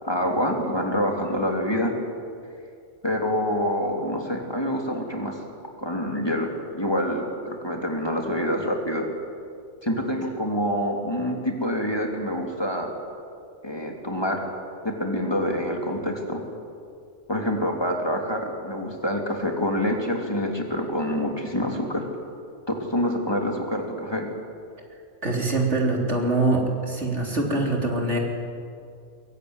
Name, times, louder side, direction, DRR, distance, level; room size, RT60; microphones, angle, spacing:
voice 1, 0.0-1.9 3.0-5.4 5.8-9.1 9.8-12.9 13.6-14.4 14.8-16.4 17.3-22.1 22.7-24.3, equal, 20° left, 1 dB, 3.2 m, -26 dB
voice 2, 25.2-28.2, right 2 dB, 70° right, 0 dB, 4.1 m, -24 dB
23.0 x 22.5 x 9.7 m, 2.4 s
omnidirectional pair, 1.2 m